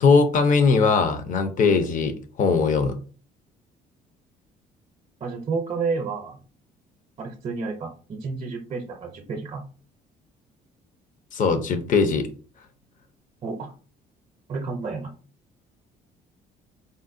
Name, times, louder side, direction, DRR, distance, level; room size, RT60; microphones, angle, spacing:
voice 1, 0.0-3.0 11.3-12.3, left 4 dB, 50° left, 8 dB, 0.6 m, -20 dB
voice 2, 5.2-6.4 7.2-9.7 13.4-13.7 14.5-15.1, right 4 dB, 40° right, 3 dB, 0.5 m, -30 dB
3.8 x 2.1 x 2.5 m, 0.38 s
cardioid pair, 110°, 17 cm